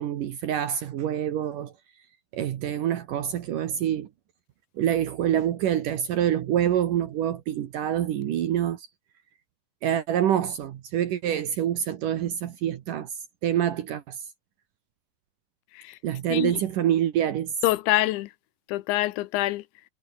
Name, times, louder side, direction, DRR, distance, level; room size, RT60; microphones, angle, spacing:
voice 1, 0.0-1.7 2.3-4.1 4.8-8.9 9.8-13.1 13.4-14.2 16.0-17.5, right 10 dB, 75° right, 1.9 m, -26 dB
voice 2, 16.3-16.6 17.6-18.3 18.7-19.6, left 17 dB, 80° left, 2.8 m, -25 dB
omnidirectional pair, 5.9 m